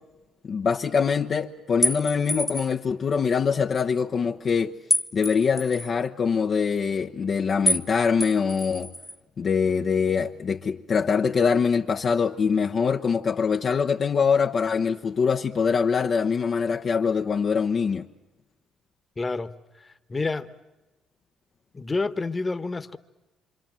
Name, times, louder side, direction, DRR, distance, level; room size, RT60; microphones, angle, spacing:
voice 1, 0.4-4.7 5.1-8.9 9.4-18.1, left 6 dB, 50° left, 0.9 m, -24 dB
sound 1, 1.8-2.8 4.9-5.9 7.7-7.9 8.2-9.2, left 1 dB, 10° left, 1.3 m, -27 dB
voice 2, 19.2-20.5 21.7-23.0, left 3 dB, 30° left, 1.3 m, -29 dB
27.0 x 26.5 x 7.6 m
hypercardioid pair, 60°, 0 cm